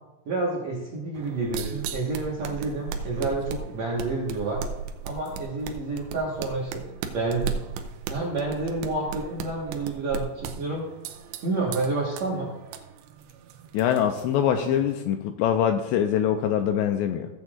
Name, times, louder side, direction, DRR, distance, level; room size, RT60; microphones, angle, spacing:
voice 1, 0.2-4.6 5.0-6.9 7.1-7.6 8.1-10.8 11.4-12.5, right 3 dB, 65° right, -4 dB, 1.7 m, -29 dB
sound 1, 1.1-14.9, right 6 dB, 85° right, 2.7 m, -37 dB
voice 2, 13.7-17.3, left 9 dB, 85° left, 6 dB, 2.5 m, -24 dB
16.0 x 8.2 x 2.5 m, 1.0 s
omnidirectional pair, 5.3 m